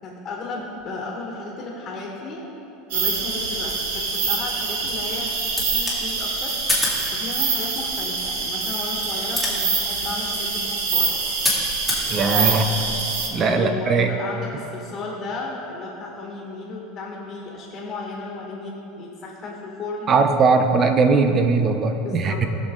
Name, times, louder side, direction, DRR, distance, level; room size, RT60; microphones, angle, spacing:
voice 1, 0.0-2.4 2.9-5.3 5.7-6.5 7.1-11.2 12.2-12.8 13.3-20.1 22.0-22.4, left 3 dB, 25° left, -3 dB, 1.8 m, -34 dB
sound 1, 2.9-13.3, right 4 dB, 85° right, 1.6 m, -25 dB
sound 2, 5.5-12.1, left 1 dB, 5° right, 2.4 m, -30 dB
voice 2, 12.1-12.6 13.3-14.1 20.1-22.4, right 4 dB, 25° right, 6 dB, 0.8 m, -19 dB
19.0 x 6.4 x 3.9 m, 3.0 s
supercardioid pair, 155°, 0 cm